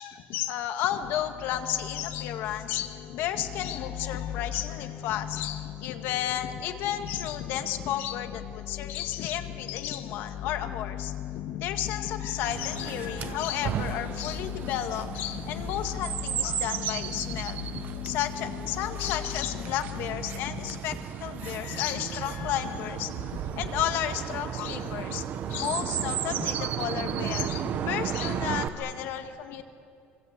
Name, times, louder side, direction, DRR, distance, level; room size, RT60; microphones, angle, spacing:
voice 1, 0.0-11.1 11.4-17.7 18.0-25.2 25.5-29.6, left 11 dB, 65° left, 6 dB, 1.9 m, -32 dB
sound 1, 1.0-20.8, left 12 dB, 45° left, 0.8 m, -39 dB
Chirp tweet, 12.4-28.7, right 9 dB, 45° right, 1.0 m, -34 dB
26.0 x 24.5 x 8.2 m, 2.5 s
cardioid pair, 170°, 4 cm